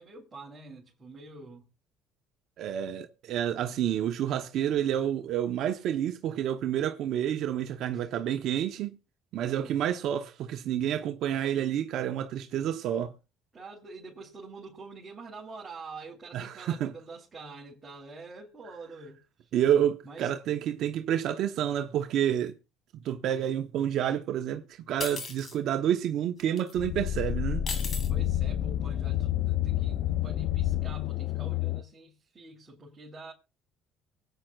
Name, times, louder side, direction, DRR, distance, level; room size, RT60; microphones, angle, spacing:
voice 1, 0.0-1.7 7.9-8.1 9.4-9.7 13.5-19.5 20.0-20.4 28.1-33.3, right 3 dB, 25° right, 3.7 m, -46 dB
voice 2, 2.6-9.0 9.3-13.1 16.3-16.9 19.5-22.5 23.0-27.6, right 10 dB, 65° right, 0.9 m, -29 dB
sound 1, 25.0-25.5 26.6-26.7 27.7-28.1, left 4 dB, 40° left, 2.5 m, -36 dB
sound 2, 26.8-31.8, left 12 dB, 65° left, 0.6 m, -29 dB
24.5 x 9.1 x 2.4 m
supercardioid pair, 90°, 0 cm